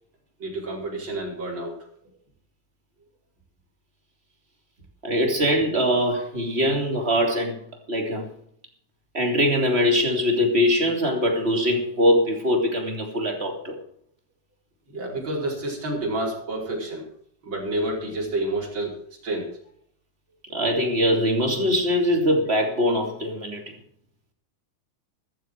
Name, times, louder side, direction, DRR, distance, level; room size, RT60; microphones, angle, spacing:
voice 1, 0.4-1.8 14.9-17.0 17.4-19.0 19.2-19.5, right 1 dB, 40° right, -3 dB, 5.5 m, -29 dB
voice 2, 5.0-7.5 7.9-8.3 9.1-13.7 20.5-23.6, equal, 20° right, 2 dB, 3.0 m, -22 dB
14.5 x 14.0 x 4.7 m, 0.62 s
omnidirectional pair, 3.4 m